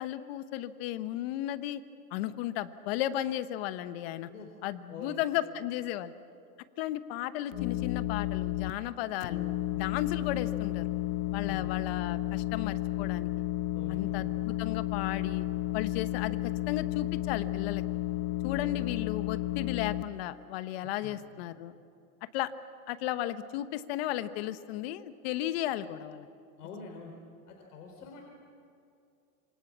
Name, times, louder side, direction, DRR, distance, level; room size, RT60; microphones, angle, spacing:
voice 1, 0.0-1.8 2.1-4.3 4.6-6.1 6.8-10.9 11.3-13.3 13.9-15.5 15.7-17.8 18.4-21.7 22.3-22.5 22.9-26.3, left 13 dB, 40° left, 12 dB, 1.1 m, -34 dB
voice 2, 4.9-5.2 11.4-11.7 13.7-14.3 21.0-21.2 26.6-27.1 27.5-28.2, left 5 dB, 80° left, 2 dB, 4.1 m, -45 dB
sound 1, 7.5-8.7 9.2-20.0, left 15 dB, 60° left, 1.3 m, -32 dB
27.0 x 25.0 x 7.4 m, 2.5 s
supercardioid pair, 155°, 45 cm